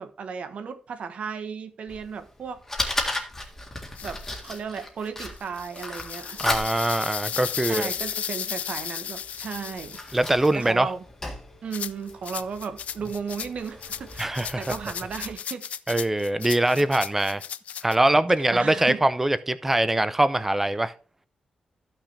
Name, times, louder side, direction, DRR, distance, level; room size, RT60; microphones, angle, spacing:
voice 1, 0.0-2.6 4.0-6.4 7.3-10.0 10.5-11.0 11.6-16.0 18.5-19.0, right 6 dB, 65° right, 1.1 m, -35 dB
Fire, 1.9-15.3, left 2 dB, 15° left, 1.8 m, -36 dB
sound 1, 4.0-4.6 5.4-10.7 11.7-18.0, left 9 dB, 80° left, 0.4 m, -35 dB
voice 2, 6.4-7.9 10.1-10.9 14.2-14.6 15.9-17.4 17.8-20.9, right 1 dB, 10° right, 0.6 m, -23 dB
14.0 x 6.0 x 3.3 m
wide cardioid pair, 155°, 2 cm